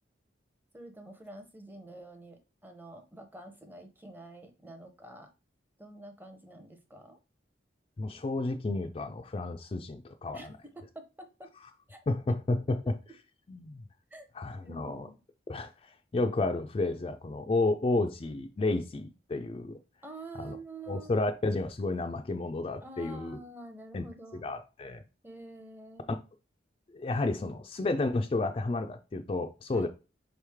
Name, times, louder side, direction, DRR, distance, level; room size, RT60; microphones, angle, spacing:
voice 1, 0.7-5.3 5.8-7.2 10.3-11.5 11.9-12.0 12.3-13.2 14.1-14.3 14.6-15.2 20.0-21.3 22.1-22.2 22.8-24.5 25.2-26.2 29.7-29.9, right 2 dB, 10° right, 0.6 m, -48 dB
voice 2, 8.0-10.4 12.1-12.8 13.5-13.8 14.3-15.1 15.5-19.8 20.4-20.6 20.9-23.4 23.9-24.1 24.4-25.0 26.9-29.9, left 2 dB, 30° left, 0.3 m, -31 dB
4.8 x 3.2 x 3.4 m
head